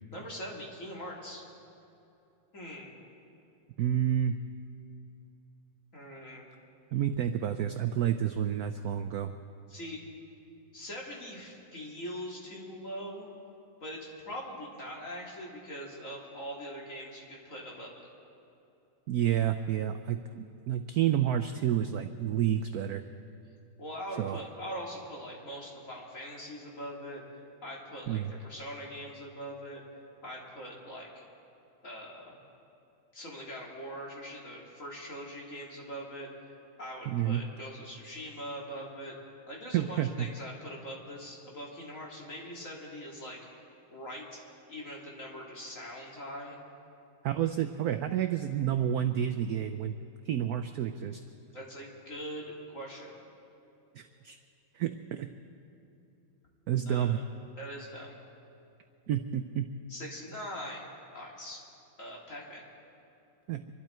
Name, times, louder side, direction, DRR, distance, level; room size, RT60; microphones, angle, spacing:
voice 1, 0.1-1.4 2.5-2.9 5.9-6.5 9.7-10.0 10.7-13.3 13.8-18.1 23.8-29.8 30.2-31.2 31.8-32.4 33.1-36.3 36.8-39.2 39.5-43.4 43.9-44.4 44.7-46.6 51.5-53.1 56.9-57.2 57.6-58.1 59.9-60.9 61.1-61.6 62.0-62.6, equal, 40° left, -3 dB, 2.8 m, -42 dB
voice 2, 3.8-4.3 6.9-9.3 19.1-23.0 24.2-24.4 28.1-28.3 37.1-37.4 39.7-40.3 47.2-49.9 50.3-51.2 53.9-54.4 54.7-55.3 56.7-57.2 59.1-59.7 63.5-63.6, right 10 dB, 85° right, 9 dB, 0.8 m, -29 dB
26.0 x 12.0 x 4.4 m, 2.8 s
omnidirectional pair, 2.2 m